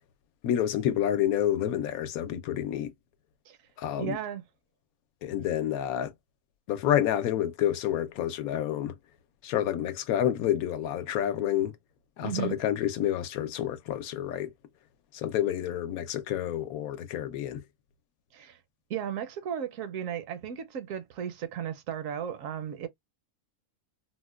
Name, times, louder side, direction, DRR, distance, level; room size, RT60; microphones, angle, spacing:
voice 1, 0.4-2.9 3.8-4.2 5.2-6.1 6.7-8.9 9.4-11.7 12.2-14.5 15.1-17.6, left 11 dB, 80° left, 1.0 m, -29 dB
voice 2, 4.0-4.4 12.2-12.6 18.3-18.6 18.9-22.9, right 9 dB, 70° right, 0.9 m, -35 dB
4.0 x 2.1 x 2.3 m
omnidirectional pair, 1.5 m